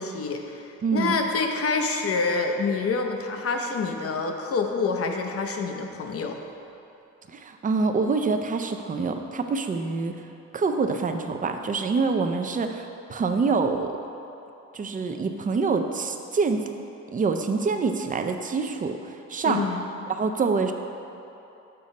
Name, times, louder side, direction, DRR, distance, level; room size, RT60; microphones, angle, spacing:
voice 1, 0.0-0.6 0.9-6.4 19.4-19.9, left 4 dB, 50° left, 4 dB, 0.7 m, -27 dB
voice 2, 0.8-1.2 7.3-10.1 10.5-14.0 14.7-16.7 17.1-19.6 20.1-20.7, right 4 dB, 25° right, 6 dB, 0.5 m, -26 dB
6.8 x 3.8 x 5.2 m, 3.0 s
cardioid pair, 90°, 30 cm